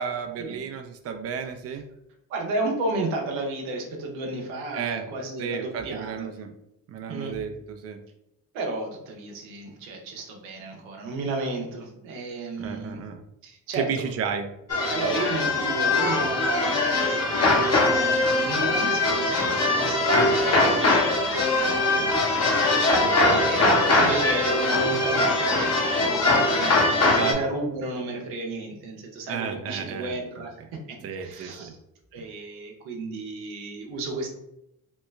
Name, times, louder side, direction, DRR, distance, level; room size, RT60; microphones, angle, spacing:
voice 1, 0.0-1.8 4.7-5.1 5.4-6.5 6.9-8.0 12.6-13.2 13.8-14.5 20.1-20.4 23.0-23.5 27.1-27.4 29.3-30.1 31.0-31.7 32.2-32.3, right 7 dB, 35° right, 6 dB, 0.5 m, -32 dB
voice 2, 2.3-6.3 7.1-7.3 8.5-13.0 13.4-13.9 14.9-30.5 30.9-31.7 32.1-34.3, right 2 dB, 85° right, 1 dB, 0.8 m, -33 dB
sound 1, 14.7-27.3, left 2 dB, 35° left, 0.9 m, -22 dB
3.1 x 2.2 x 3.2 m, 0.83 s
hypercardioid pair, 50°, 45 cm